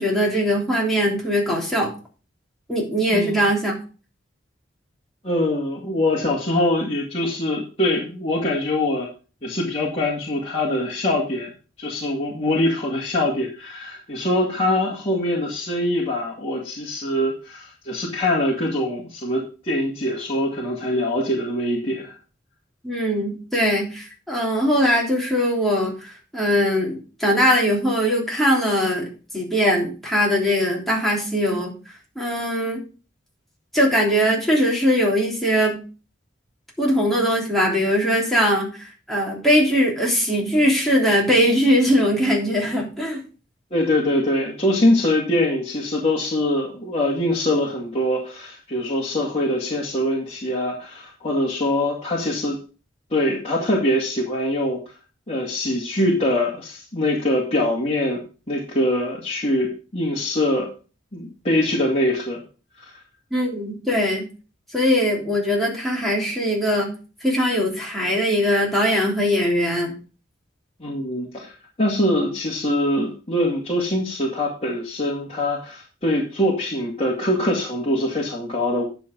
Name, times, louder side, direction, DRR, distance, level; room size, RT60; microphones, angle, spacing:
voice 1, 0.0-1.9 2.7-3.7 22.8-29.1 29.3-31.7 32.1-32.8 33.7-35.8 36.8-43.2 63.3-64.2 64.7-66.9 67.2-69.9, equal, ahead, -4 dB, 3.3 m, -21 dB
voice 2, 5.2-9.1 9.4-11.5 11.8-22.1 43.7-52.6 53.1-54.9 55.3-58.2 58.5-60.7 61.1-62.4 62.8-62.9 70.8-71.5 71.8-78.8, left 1 dB, 30° left, -5 dB, 2.2 m, -23 dB
10.5 x 6.2 x 5.3 m, 0.35 s
head